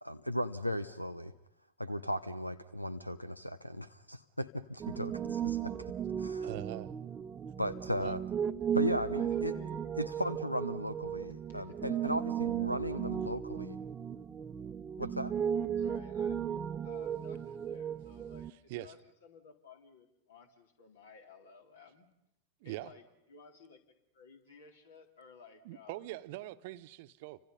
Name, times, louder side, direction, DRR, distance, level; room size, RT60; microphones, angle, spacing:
voice 1, 0.0-1.3 1.8-5.7 6.2-6.5 7.6-8.2 8.7-9.5 10.0-13.8 15.0-15.3, equal, 90° left, 16 dB, 0.9 m, -36 dB
Piano, 4.8-18.5, right 8 dB, 20° right, 0.9 m, -36 dB
voice 2, 6.4-6.9 8.0-8.2 18.7-18.9 22.6-22.9 25.6-27.4, right 16 dB, 50° right, 11 dB, 1.1 m, -42 dB
voice 3, 9.1-10.3 11.5-13.3 15.8-16.4 16.8-22.1 22.6-23.0 23.3-23.8 24.1-26.0, left 5 dB, 65° left, 4 dB, 3.8 m, -56 dB
30.0 x 25.5 x 5.5 m, 0.81 s
figure-of-eight pair, 90°, 0 cm